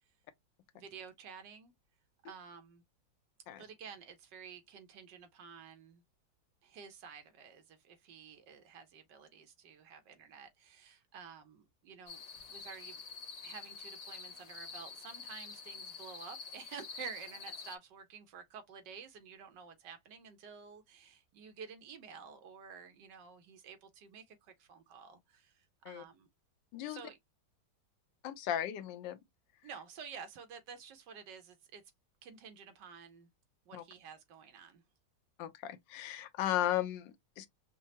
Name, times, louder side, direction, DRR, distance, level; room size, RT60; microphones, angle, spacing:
voice 1, 0.7-1.7 2.2-2.8 3.6-6.0 6.6-12.2 12.5-13.0 13.4-26.3 26.9-27.2 29.6-31.8 32.2-33.3 33.7-34.8, right 6 dB, 75° right, 1.5 m, -51 dB
sound 1, 12.1-17.8, left 5 dB, 55° left, 1.1 m, -47 dB
voice 2, 28.2-29.2 33.7-33.8 35.4-37.5, left 12 dB, 80° left, 1.3 m, -36 dB
5.4 x 2.0 x 2.8 m
omnidirectional pair, 2.0 m